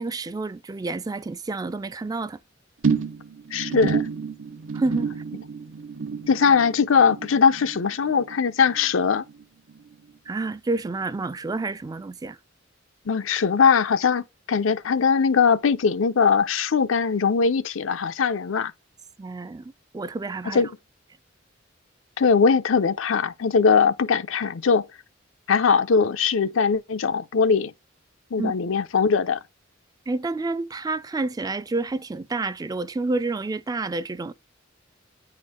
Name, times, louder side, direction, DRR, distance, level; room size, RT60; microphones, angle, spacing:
voice 1, 0.0-2.4 4.7-5.1 10.3-12.4 19.2-20.6 28.4-28.5 30.1-34.3, right 3 dB, 20° right, 0.3 m, -29 dB
sound 1, 2.8-9.4 9.7-10.1 10.4-10.5, right 5 dB, 90° right, 0.9 m, -30 dB
voice 2, 3.5-4.0 6.3-9.2 13.1-18.7 20.5-20.7 22.2-24.9 25.5-27.7 28.3-29.4, left 5 dB, 85° left, 0.6 m, -21 dB
9.3 x 4.5 x 3.6 m
head